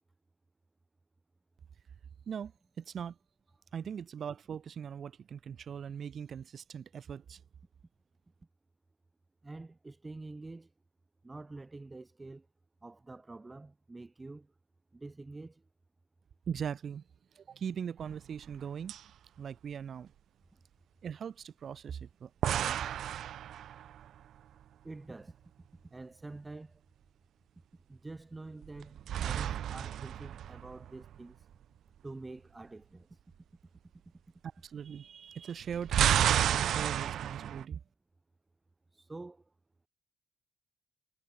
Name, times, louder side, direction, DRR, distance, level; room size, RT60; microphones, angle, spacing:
voice 1, 2.3-3.2 3.7-7.4 16.5-17.0 17.3-19.0 19.4-20.1 21.0-22.9 34.6-37.8, right 7 dB, 55° right, 2.4 m, -40 dB
voice 2, 9.4-10.7 11.2-12.5 12.8-14.5 14.9-15.6 20.5-20.6 24.8-25.4 25.9-26.8 27.9-31.5 32.0-33.2 38.9-39.5, right 2 dB, 20° right, 2.3 m, -47 dB
sound 1, 18.0-18.6 18.9-19.0 22.4-24.1 28.6-31.2 35.6-37.6, right 10 dB, 70° right, 0.6 m, -31 dB
cardioid pair, 90°, 0 cm